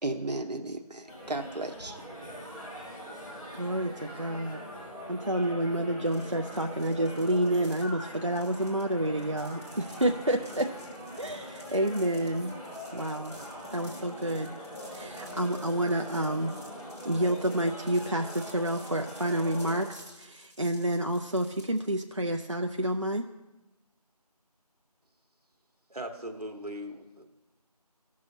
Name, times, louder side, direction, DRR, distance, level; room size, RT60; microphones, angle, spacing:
voice 1, 0.0-2.0, right 2 dB, 85° right, 4 dB, 0.8 m, -34 dB
sound 1, 1.1-19.9, equal, 55° left, 3.1 m, -42 dB
voice 2, 3.5-4.6 5.1-10.7 11.2-12.5 12.9-13.4 13.7-14.5 14.9-16.5 17.0-23.2, right 1 dB, 50° right, 3 dB, 0.4 m, -29 dB
sound 2, 6.0-21.8, equal, 20° right, 1.7 m, -53 dB
voice 3, 25.9-27.2, equal, 65° right, 4 dB, 1.4 m, -39 dB
16.0 x 6.2 x 2.8 m, 0.99 s
figure-of-eight pair, 180°, 21 cm